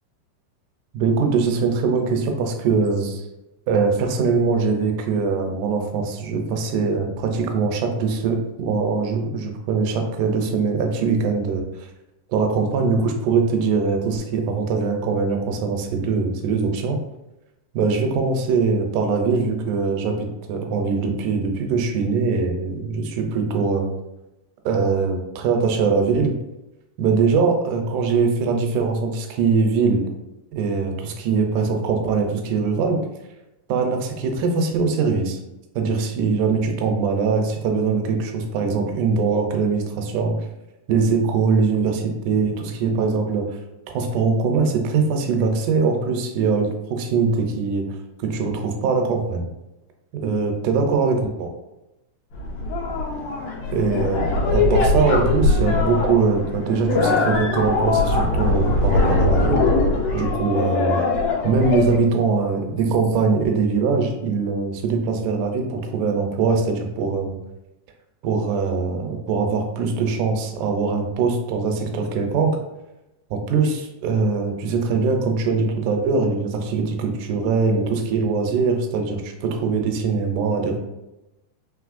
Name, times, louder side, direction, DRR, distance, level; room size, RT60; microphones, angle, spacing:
voice 1, 0.9-3.3 3.7-11.6 12.3-17.0 17.7-23.9 24.7-26.3 27.0-30.1 30.5-33.0 33.7-35.4 35.8-40.4 40.9-43.6 43.9-47.9 48.2-49.4 50.1-51.5 53.7-59.7 60.1-61.0 61.4-67.4 68.2-72.6 73.3-80.8, right 4 dB, 80° right, 3 dB, 2.2 m, -22 dB
sound 1, 52.3-62.0, left 3 dB, 85° left, 2.3 m, -21 dB
5.3 x 3.1 x 2.5 m, 0.96 s
omnidirectional pair, 3.7 m